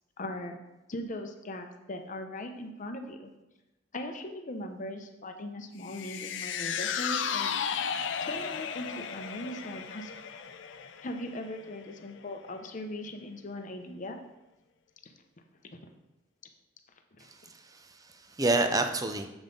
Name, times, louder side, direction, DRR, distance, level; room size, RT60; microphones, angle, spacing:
voice 1, 0.2-0.5 0.9-3.3 3.9-7.6 8.2-10.1 11.0-14.2 17.2-17.3, left 1 dB, 45° left, 5 dB, 0.7 m, -39 dB
sound 1, 5.8-12.3 12.6-12.7, left 7 dB, 75° left, 0.4 m, -35 dB
voice 2, 17.2-19.3, right 2 dB, 20° right, 6 dB, 0.5 m, -29 dB
7.2 x 5.3 x 3.9 m, 0.97 s
head